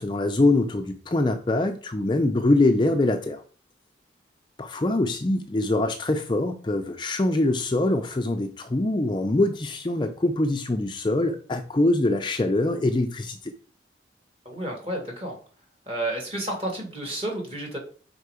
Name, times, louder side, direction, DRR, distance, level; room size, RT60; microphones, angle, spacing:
voice 1, 0.0-3.4 4.6-13.5, left 2 dB, 25° left, 6 dB, 0.4 m, -24 dB
voice 2, 14.5-15.4 15.9-17.8, right 1 dB, 30° right, 0 dB, 2.2 m, -31 dB
5.5 x 4.3 x 4.9 m, 0.41 s
head